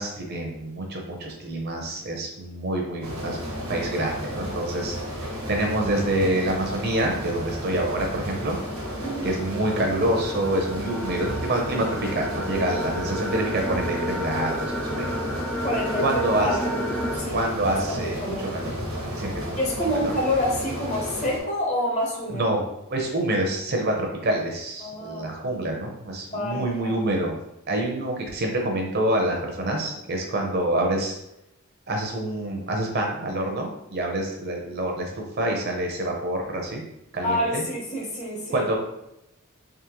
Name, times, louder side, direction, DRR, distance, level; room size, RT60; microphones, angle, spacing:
voice 1, 0.0-5.0 5.5-8.6 9.2-15.3 16.0-16.6 17.3-19.6 19.9-20.1 22.3-22.6 22.9-27.3 27.7-31.2 31.9-36.8 37.1-37.6 38.5-38.8, right 1 dB, 50° right, 1 dB, 0.7 m, -27 dB
sound 1, 3.0-21.4, equal, 90° right, 1.3 m, -33 dB
sound 2, 4.3-17.2, equal, 5° left, 0.4 m, -34 dB
voice 2, 9.0-9.3 15.6-16.8 17.1-17.4 17.7-18.5 19.6-22.5 24.8-25.3 26.3-27.0 37.2-38.7, left 1 dB, 35° left, -2 dB, 0.9 m, -28 dB
3.6 x 3.1 x 3.0 m, 0.83 s
head